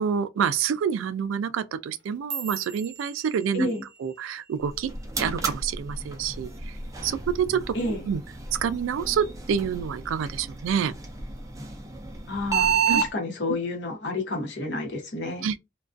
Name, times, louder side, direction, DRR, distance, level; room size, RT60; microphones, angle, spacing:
voice 1, 0.0-3.7 4.0-4.9 5.2-6.8 7.0-7.8 8.1-8.2 8.5-10.9 12.9-13.0 15.4-15.6, right 7 dB, 90° right, 0.3 m, -27 dB
sound 1, 1.9-6.3 6.6-7.0 7.4-7.8 8.2-8.4 9.0-9.4 9.8-10.6 11.0-11.4 12.2-12.3, right 6 dB, 60° right, 0.7 m, -42 dB
sound 2, 4.6-13.1, right 6 dB, 15° right, 0.4 m, -31 dB
voice 2, 12.3-15.5, left 2 dB, 65° left, 0.8 m, -30 dB
2.4 x 2.2 x 2.4 m
head